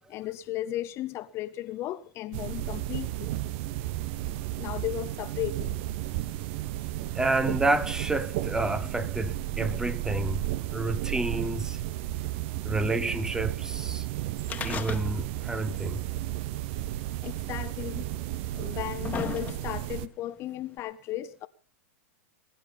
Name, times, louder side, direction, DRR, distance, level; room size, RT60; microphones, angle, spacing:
voice 1, 0.1-3.3 4.6-5.8 17.2-18.1 18.5-21.5, left 14 dB, 35° left, 0.6 m, -35 dB
sound 1, 2.3-20.1, right 15 dB, 50° right, 0.9 m, -33 dB
voice 2, 7.1-11.8 12.6-14.1 14.6-16.0, right 2 dB, 10° right, 1.0 m, -29 dB
sound 2, 14.4-15.5 15.7-15.8 16.8-16.9 17.8-17.9 18.6-19.9 20.8-20.9, left 7 dB, 20° left, 1.6 m, -35 dB
21.5 x 10.0 x 5.4 m
hypercardioid pair, 130°, 8 cm